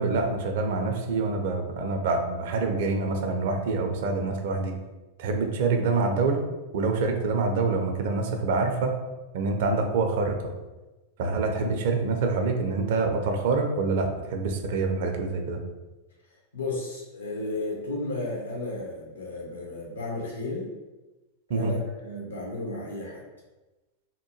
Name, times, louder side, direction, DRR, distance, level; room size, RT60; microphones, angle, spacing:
voice 1, 0.0-4.7 5.2-6.4 6.7-8.9 9.3-10.4 11.2-15.6 21.5-21.7, right 3 dB, 55° right, 4 dB, 0.4 m, -26 dB
voice 2, 16.5-20.7 21.5-23.2, left 2 dB, 75° left, -2 dB, 0.7 m, -33 dB
2.8 x 2.1 x 3.0 m, 1.1 s
figure-of-eight pair, 90°, 0 cm